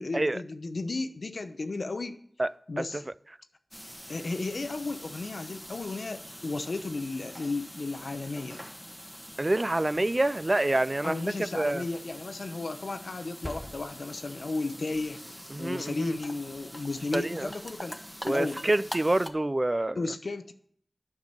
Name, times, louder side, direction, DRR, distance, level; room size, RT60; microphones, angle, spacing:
voice 1, 0.0-2.2 2.7-3.1 4.1-8.6 11.0-18.0 18.2-18.6 20.0-20.5, left 3 dB, 85° left, 0.8 m, -34 dB
sound 1, 3.7-19.3, equal, 5° left, 1.1 m, -44 dB
voice 2, 9.4-11.8 15.5-16.1 17.1-17.5 18.2-20.1, right 2 dB, 40° right, 0.4 m, -27 dB
8.8 x 5.9 x 8.0 m
cardioid pair, 40°, 0 cm